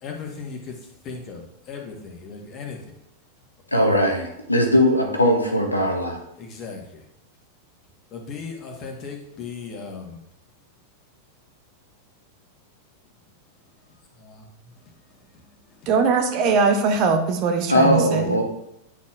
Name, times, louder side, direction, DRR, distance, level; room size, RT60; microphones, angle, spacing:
voice 1, 0.0-0.8 1.0-2.8 6.4-7.0 8.1-10.2 14.2-14.4 14.8-15.9, left 5 dB, 35° left, 2 dB, 1.4 m, -37 dB
voice 2, 3.7-6.2 17.7-18.4, equal, 85° left, 3 dB, 0.9 m, -19 dB
voice 3, 15.9-18.4, right 5 dB, 40° right, 6 dB, 0.8 m, -21 dB
9.8 x 4.2 x 2.5 m, 0.78 s
figure-of-eight pair, 90°, 0 cm